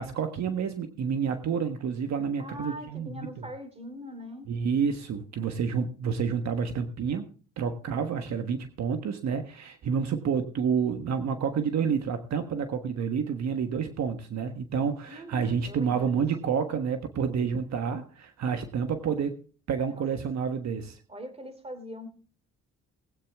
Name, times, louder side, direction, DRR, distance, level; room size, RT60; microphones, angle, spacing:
voice 1, 0.0-3.5 4.5-7.3 7.6-19.4 19.7-21.0, right 6 dB, 60° right, 7 dB, 1.4 m, -29 dB
voice 2, 2.4-4.5 15.1-16.3 19.9-20.0 21.1-22.1, equal, 20° right, 9 dB, 3.0 m, -42 dB
20.0 x 8.8 x 3.5 m, 0.39 s
cardioid pair, 90°, 30 cm